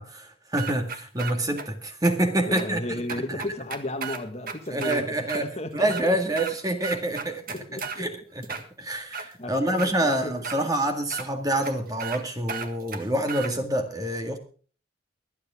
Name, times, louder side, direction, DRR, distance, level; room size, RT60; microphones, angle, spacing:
voice 1, 0.0-2.8 4.7-5.5 5.7-7.4 8.0-8.2 8.5-14.4, right 1 dB, 20° right, 1.9 m, -27 dB
CD Seeking faint mouse clicks, 0.6-1.7 2.0-2.1 2.6-2.7 3.1-5.0 5.3-5.4 5.8-6.5 6.8-8.0 8.4-9.3 9.8-9.9 10.4-10.6 11.1-11.3 11.6-11.7 12.0-12.2 12.5-13.5, right 5 dB, 45° right, 1.6 m, -34 dB
voice 2, 2.5-6.2 7.5-8.1 9.4-10.7, left 1 dB, 35° left, 1.8 m, -34 dB
24.5 x 8.3 x 3.7 m
head